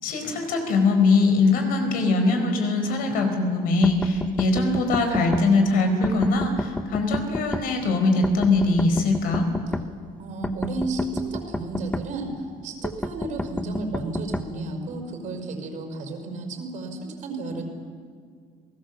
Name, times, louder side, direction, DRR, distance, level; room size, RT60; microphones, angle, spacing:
voice 1, 0.0-9.5, left 3 dB, 65° left, 6 dB, 4.6 m, -22 dB
sound 1, 3.8-5.5 6.0-7.7 8.2-9.9 10.4-12.1 12.8-14.5, left 2 dB, 10° left, 0.9 m, -30 dB
voice 2, 10.2-12.3 12.6-17.6, right 2 dB, 50° right, 3 dB, 5.1 m, -32 dB
30.0 x 18.5 x 7.4 m, 2.1 s
cardioid pair, 145°, 16 cm